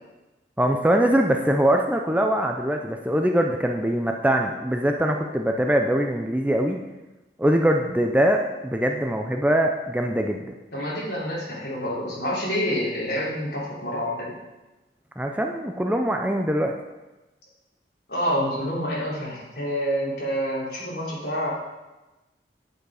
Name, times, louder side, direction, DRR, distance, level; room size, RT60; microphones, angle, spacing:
voice 1, 0.6-6.8 7.4-10.4 15.2-16.7, right 1 dB, 10° right, 3 dB, 0.5 m, -22 dB
voice 2, 10.7-14.3 18.1-21.5, equal, 65° left, -6 dB, 3.3 m, -27 dB
9.2 x 7.6 x 4.8 m, 1.1 s
head